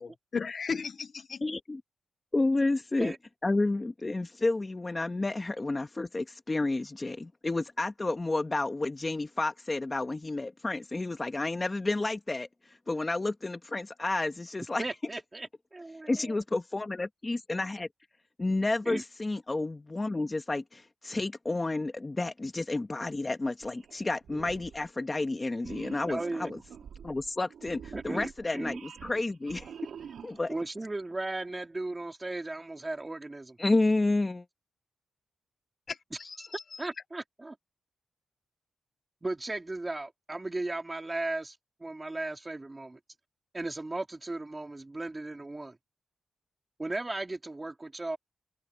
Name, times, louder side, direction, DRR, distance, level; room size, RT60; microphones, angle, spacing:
voice 1, 0.0-1.4 35.9-36.8, left 5 dB, 45° left, 0.5 m, -36 dB
voice 2, 1.4-1.8 2.3-3.1 3.4-12.5 12.9-14.8 16.1-17.9 18.4-26.6 27.0-29.7 30.2-30.5 33.6-34.4, left 2 dB, 20° left, 1.2 m, -30 dB
voice 3, 14.8-15.5 15.7-16.3 18.8-19.0 26.1-26.5 27.9-28.8 30.5-33.6 36.4-37.6 39.2-43.0 43.5-45.8 46.8-48.2, right 2 dB, 20° right, 3.2 m, -36 dB
sound 1, 23.6-24.0 24.2-24.9 25.6-30.6, right 8 dB, 80° right, 2.9 m, -46 dB
wide cardioid pair, 125°, 0 cm